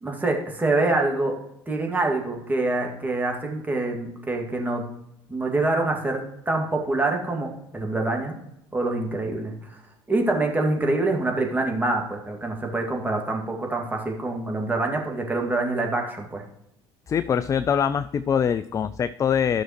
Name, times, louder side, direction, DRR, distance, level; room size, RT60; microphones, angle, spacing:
voice 1, 0.0-1.4 1.7-4.8 5.3-8.4 8.7-9.5 10.1-16.4, right 2 dB, 15° right, 1 dB, 2.0 m, -25 dB
voice 2, 17.1-19.6, left 7 dB, 25° left, 14 dB, 0.3 m, -23 dB
12.5 x 6.2 x 3.0 m, 0.81 s
hypercardioid pair, 65°, 12 cm